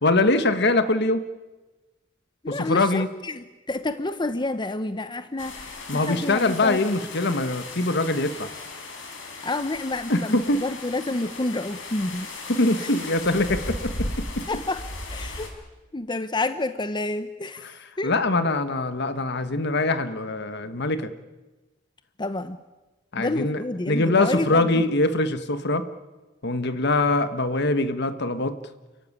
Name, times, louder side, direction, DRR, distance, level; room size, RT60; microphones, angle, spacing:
voice 1, 0.0-1.3 2.5-3.1 5.9-8.5 10.1-10.6 12.5-14.5 18.0-21.1 23.1-23.6 23.9-25.9 26.4-28.6, left 2 dB, 60° left, 11 dB, 1.5 m, -23 dB
voice 2, 2.4-6.8 9.4-12.3 12.8-12.9 14.5-15.5 15.9-18.1 22.2-22.6 23.2-24.8, left 2 dB, 25° left, 11 dB, 0.8 m, -29 dB
sound 1, 5.4-15.5, left 2 dB, 80° left, 4.8 m, -36 dB
30.0 x 15.0 x 9.9 m, 1.2 s
head